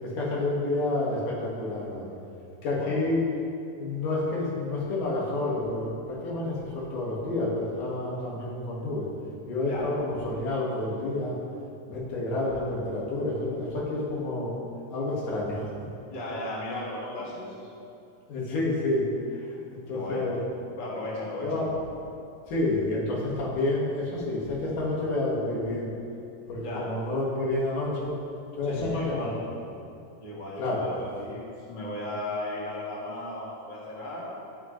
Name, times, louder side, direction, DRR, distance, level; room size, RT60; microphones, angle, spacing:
voice 1, 0.0-2.1 2.6-3.2 3.7-9.1 9.5-11.3 11.9-14.6 14.9-15.8 18.3-19.1 19.4-20.4 21.4-21.7 22.5-25.9 26.5-28.1 28.6-29.3 30.6-30.9, left 2 dB, 90° left, -5 dB, 3.5 m, -29 dB
voice 2, 16.1-17.8 19.9-20.2 20.8-21.6 26.6-26.9 28.6-29.3 30.2-34.3, left 1 dB, 20° left, -6 dB, 1.5 m, -36 dB
17.5 x 6.5 x 3.2 m, 2.7 s
omnidirectional pair, 3.5 m